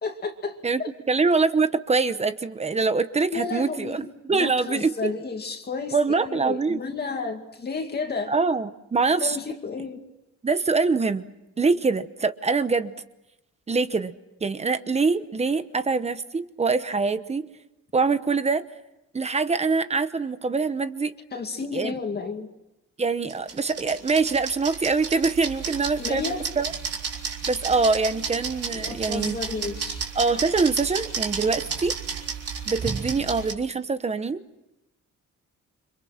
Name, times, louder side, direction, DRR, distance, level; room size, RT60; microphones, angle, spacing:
voice 1, 0.0-0.9 3.3-8.3 9.2-10.0 21.3-22.5 26.0-26.5 28.7-30.1, left 4 dB, 30° left, 4 dB, 2.3 m, -32 dB
voice 2, 1.1-5.1 5.9-6.8 8.3-9.4 10.4-11.2 11.6-12.9 13.7-14.1 14.4-17.5 17.9-18.6 19.1-21.1 21.7-22.0 23.0-26.7 27.5-29.4 30.1-31.9 32.7-34.4, right 4 dB, 20° right, 12 dB, 1.0 m, -24 dB
sound 1, 23.3-33.5, right 6 dB, 50° right, 3.8 m, -32 dB
29.5 x 26.5 x 5.9 m, 0.93 s
wide cardioid pair, 175°, 31 cm